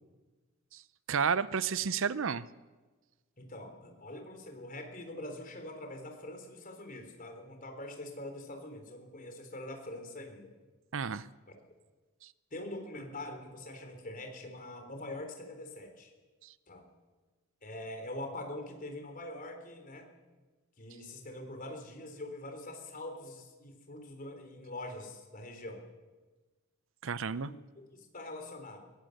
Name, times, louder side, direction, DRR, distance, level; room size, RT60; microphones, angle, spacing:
voice 1, 1.1-2.5 10.9-11.3 27.0-27.5, right 6 dB, 65° right, 17 dB, 0.6 m, -31 dB
voice 2, 3.4-10.5 12.5-16.1 16.7-16.8 17.6-20.1 20.8-25.8 27.3-28.8, left 1 dB, 40° left, 5 dB, 3.9 m, -44 dB
21.5 x 18.5 x 6.7 m, 1.3 s
head